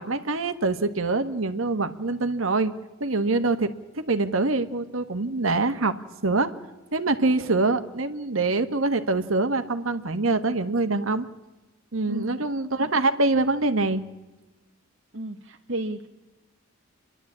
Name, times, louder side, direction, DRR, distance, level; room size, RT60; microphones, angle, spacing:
voice 1, 0.0-2.7 3.0-3.7 3.9-5.9 6.2-6.5 6.9-11.3 11.9-14.0, right 3 dB, 85° right, 9 dB, 1.4 m, -24 dB
voice 2, 15.1-16.1, right 1 dB, 60° right, 2 dB, 1.2 m, -33 dB
28.5 x 11.5 x 8.7 m, 1.1 s
head